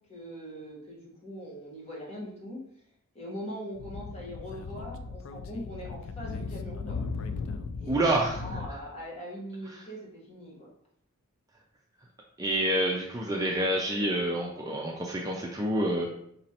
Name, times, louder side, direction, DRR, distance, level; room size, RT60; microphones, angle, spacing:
voice 1, 0.1-2.6 3.1-7.0 7.8-10.7, equal, 30° left, -4 dB, 1.2 m, -41 dB
Speech / Wind, 3.7-8.7, left 4 dB, 65° left, 0.3 m, -37 dB
voice 2, 7.9-8.4 12.4-16.1, right 1 dB, 15° right, -1 dB, 0.4 m, -27 dB
5.1 x 3.0 x 2.9 m, 0.70 s
head